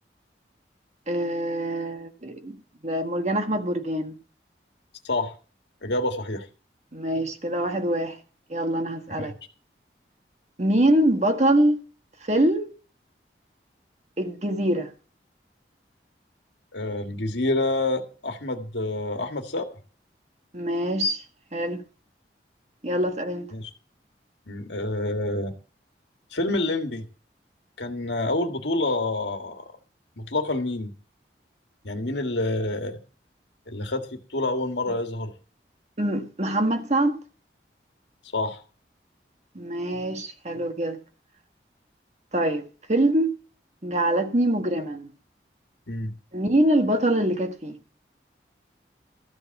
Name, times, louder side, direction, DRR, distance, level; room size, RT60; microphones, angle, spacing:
voice 1, 1.1-2.6 2.8-4.2 6.9-8.2 8.5-9.3 10.6-11.8 12.2-12.7 14.2-14.9 20.5-21.2 21.5-21.8 22.8-23.5 36.0-37.2 39.5-41.0 42.3-43.3 43.8-45.1 46.3-47.8, right 1 dB, 40° right, 1.5 m, -24 dB
voice 2, 5.8-6.5 9.2-9.3 16.7-19.7 23.5-23.7 24.5-25.5 26.3-27.1 27.8-29.7 30.2-30.9 31.8-33.0 33.7-35.3 38.3-38.6 45.9-46.1, left 2 dB, 85° left, 1.7 m, -27 dB
13.5 x 5.3 x 7.0 m
head